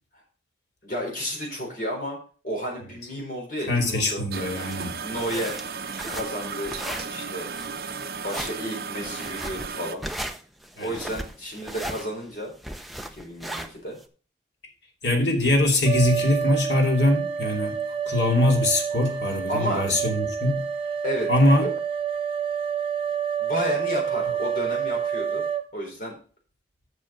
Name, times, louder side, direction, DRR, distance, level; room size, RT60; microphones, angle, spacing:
voice 1, 0.8-2.2 2.4-4.5 5.0-5.6 6.1-6.7 7.1-7.5 8.2-10.0 10.8-12.5 13.1-14.0 19.5-20.3 21.0-21.3 21.6-21.7 23.4-25.5 25.7-26.2, equal, 50° left, 4.0 m, -32 dB
voice 2, 3.7-5.0 10.8-10.9 15.0-17.8 18.1-20.6 21.3-21.7, left 1 dB, 75° left, 2.6 m, -22 dB
sound 1, 4.3-9.9, right 5 dB, 55° right, 0.8 m, -35 dB
sound 2, 4.6-14.0, right 1 dB, ahead, 0.6 m, -36 dB
sound 3, 15.9-25.6, right 8 dB, 30° right, 1.0 m, -28 dB
7.5 x 6.2 x 5.5 m
head